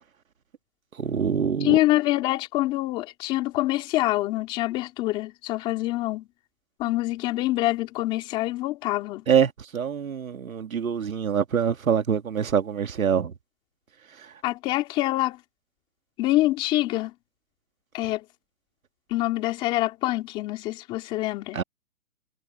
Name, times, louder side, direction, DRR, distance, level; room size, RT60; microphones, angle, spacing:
voice 1, 1.0-1.8 9.3-13.3 21.5-21.6, right 7 dB, 75° right, 2.3 m, -25 dB
voice 2, 1.6-6.3 6.8-9.2 14.4-15.4 16.2-17.1 17.9-18.2 19.1-21.6, left 17 dB, 10° left, 2.8 m, -25 dB
hypercardioid pair, 175°, 41 cm